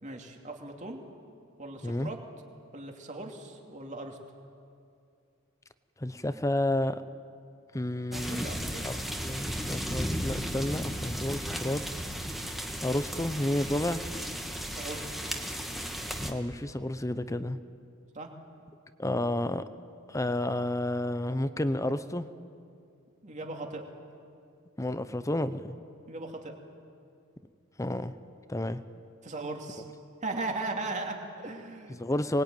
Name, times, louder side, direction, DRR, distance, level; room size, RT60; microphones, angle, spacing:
voice 1, 0.0-1.0 1.6-2.2 2.7-4.2 8.1-9.1 14.7-15.3 18.1-18.3 23.2-23.8 26.1-26.6 29.2-29.8 30.2-32.0, right 2 dB, 35° right, 2 dB, 2.7 m, -38 dB
voice 2, 6.0-7.0 7.7-8.5 8.8-8.9 9.2-11.8 12.8-14.0 16.2-17.6 19.0-19.6 20.1-22.3 24.8-25.8 27.8-28.1 28.5-28.8 31.9-32.4, left 1 dB, 15° left, 12 dB, 0.7 m, -30 dB
sound 1, 8.1-16.3, equal, ahead, 1.6 m, -35 dB
24.5 x 20.5 x 9.2 m, 2.4 s
head